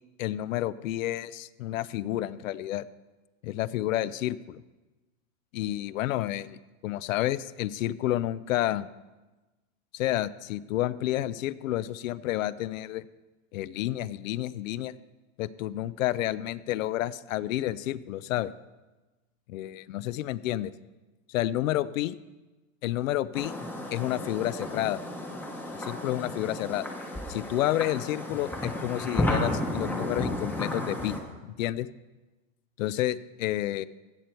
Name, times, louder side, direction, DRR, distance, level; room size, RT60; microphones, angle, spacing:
voice 1, 0.2-2.9 3.4-4.6 5.5-8.9 9.9-13.0 13.5-14.9 15.4-18.5 19.5-20.7 21.3-22.1 22.8-23.5 23.9-25.0 25.8-26.9 27.3-31.1 31.4-31.9 32.8-33.9, left 14 dB, 70° left, 17 dB, 0.6 m, -30 dB
sound 1, 23.3-31.2, left 1 dB, 5° left, 0.9 m, -33 dB
15.5 x 6.9 x 4.4 m, 1.2 s
supercardioid pair, 155°, 41 cm